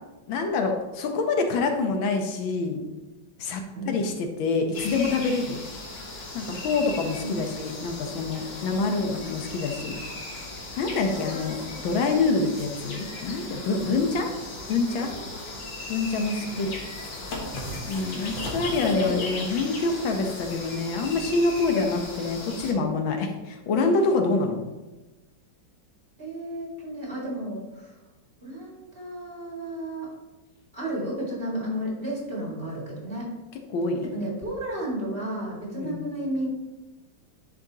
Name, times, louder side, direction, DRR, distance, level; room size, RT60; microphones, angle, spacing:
voice 1, 0.3-2.9 3.4-5.6 6.3-10.0 10.8-14.3 14.7-15.1 15.9-16.7 17.9-24.6 33.7-34.1 35.8-36.0, left 3 dB, 80° left, 4 dB, 1.6 m, -26 dB
sound 1, 4.7-22.7, left 2 dB, 65° left, 2.0 m, -37 dB
voice 2, 18.9-19.5 26.2-28.0 28.4-30.1 30.7-33.3 34.1-36.5, right 1 dB, 30° right, -5 dB, 2.2 m, -33 dB
10.5 x 5.0 x 2.8 m, 1.1 s
omnidirectional pair, 2.1 m